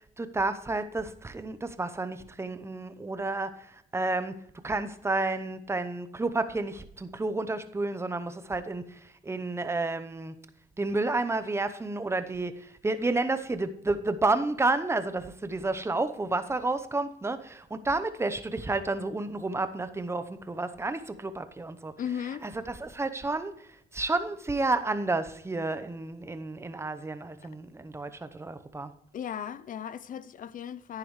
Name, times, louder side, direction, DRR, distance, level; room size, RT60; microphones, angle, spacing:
voice 1, 0.0-10.4 10.8-21.9 22.4-28.9, right 2 dB, 15° right, 0.8 m, -31 dB
voice 2, 22.0-22.5 29.1-31.0, left 9 dB, 50° left, 0.5 m, -36 dB
10.5 x 9.8 x 3.1 m
cardioid pair, 85°, 18 cm